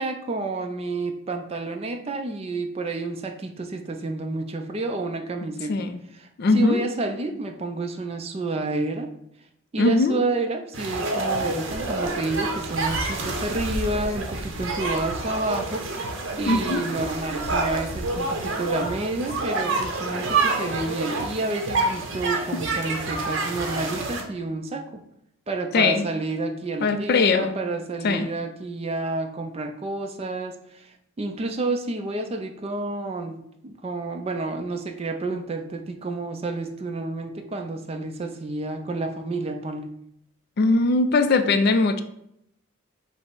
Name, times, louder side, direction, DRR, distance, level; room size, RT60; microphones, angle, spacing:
voice 1, 0.0-5.9 6.2-6.3 6.5-9.1 9.7-25.0 25.5-39.9, right 2 dB, 30° right, 5 dB, 0.4 m, -30 dB
voice 2, 5.7-6.0 6.4-6.8 9.8-10.2 16.5-16.8 25.7-26.1 26.8-27.6 28.0-28.3 40.6-42.0, left 3 dB, 45° left, 9 dB, 0.3 m, -20 dB
sound 1, 10.7-24.2, right 3 dB, 60° right, 0.7 m, -28 dB
5.4 x 2.0 x 4.5 m, 0.75 s
head